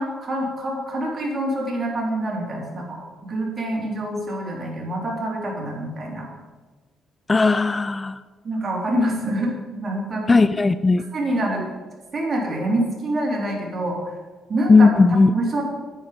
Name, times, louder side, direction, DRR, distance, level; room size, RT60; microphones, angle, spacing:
voice 1, 0.0-6.3 8.4-10.3 11.1-11.6 12.1-14.1 14.5-14.9 15.3-15.6, right 1 dB, 40° right, -1 dB, 3.3 m, -26 dB
voice 2, 7.3-8.2 10.3-11.0 14.7-15.3, left 3 dB, 25° left, 13 dB, 0.3 m, -16 dB
10.0 x 8.6 x 5.0 m, 1.4 s
cardioid pair, 90°, 0 cm